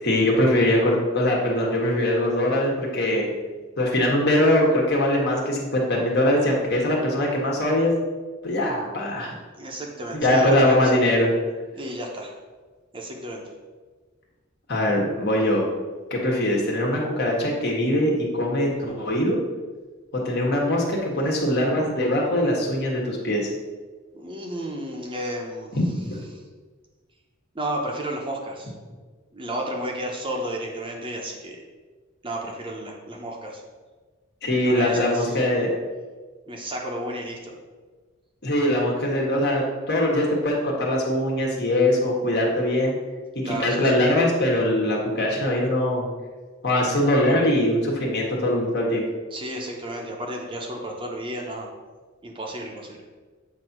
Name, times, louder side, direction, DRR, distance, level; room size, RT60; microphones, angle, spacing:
voice 1, 0.0-3.3 3.8-7.9 8.4-9.3 10.1-11.3 14.7-15.6 16.1-19.4 20.1-23.5 25.7-25.8 34.4-35.7 38.4-42.9 43.3-46.1 46.6-49.0, left 1 dB, 55° left, -2 dB, 1.4 m, -22 dB
voice 2, 9.6-10.9 11.7-12.3 12.9-13.4 24.1-25.7 27.5-28.7 29.3-31.6 32.2-33.6 34.6-35.4 36.5-37.5 43.4-43.9 49.3-51.7 52.2-53.0, right 1 dB, 25° right, 0 dB, 0.8 m, -32 dB
8.0 x 2.8 x 5.9 m, 1.4 s
head